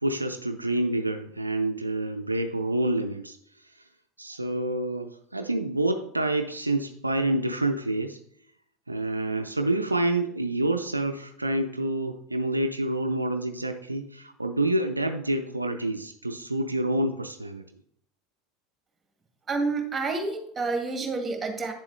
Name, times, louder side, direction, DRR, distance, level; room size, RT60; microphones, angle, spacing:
voice 1, 0.0-3.4 4.2-8.2 8.9-17.6, right 1 dB, 85° right, 7 dB, 0.4 m, -28 dB
voice 2, 19.5-21.7, right 3 dB, 20° right, 4 dB, 2.0 m, -29 dB
9.6 x 7.1 x 3.3 m, 0.71 s
figure-of-eight pair, 75°, 0 cm